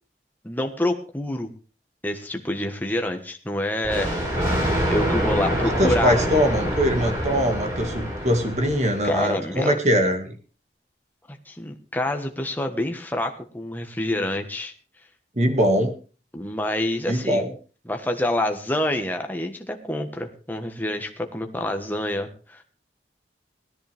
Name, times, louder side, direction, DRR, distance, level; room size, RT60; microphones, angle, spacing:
voice 1, 0.4-1.5 2.0-4.2 4.9-6.3 9.0-9.8 11.3-14.7 16.3-17.5 17.8-22.7, left 1 dB, 10° left, 4 dB, 1.4 m, -27 dB
Thunder, 3.8-9.2, equal, 20° right, 6.6 m, -25 dB
voice 2, 5.8-10.3 15.4-15.9 17.1-17.5, equal, 40° right, 4 dB, 2.1 m, -22 dB
18.5 x 13.5 x 3.5 m, 0.38 s
head